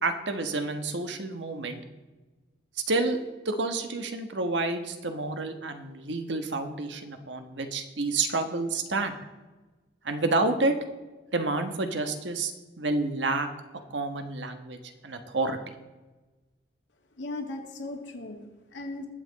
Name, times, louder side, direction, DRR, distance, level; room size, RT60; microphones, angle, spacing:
voice 1, 0.0-1.8 2.9-3.2 3.4-9.2 10.0-10.8 11.3-13.5 13.9-15.6, right 3 dB, 80° right, 7 dB, 1.3 m, -29 dB
voice 2, 17.2-19.1, left 2 dB, 80° left, 2 dB, 2.2 m, -37 dB
20.0 x 7.7 x 4.1 m, 1.2 s
head